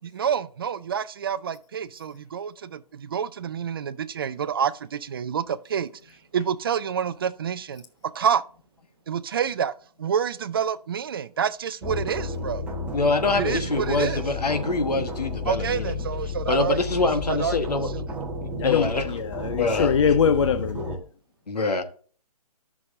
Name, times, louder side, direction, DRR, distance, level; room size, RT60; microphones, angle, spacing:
voice 1, 0.1-2.8 3.1-5.9 6.3-7.8 8.2-8.4 9.1-9.7 10.0-12.6 13.4-14.2 15.5-16.8 17.3-17.5, right 7 dB, 35° right, 0.4 m, -27 dB
sound 1, 11.8-21.0, left 2 dB, 5° right, 1.2 m, -32 dB
voice 2, 12.9-16.0 16.5-17.9 18.6-19.2 19.6-19.9 21.5-21.8, left 3 dB, 75° left, 1.3 m, -25 dB
voice 3, 18.6-21.0, left 6 dB, 50° left, 0.5 m, -23 dB
12.0 x 6.1 x 2.6 m
figure-of-eight pair, 140°, 20 cm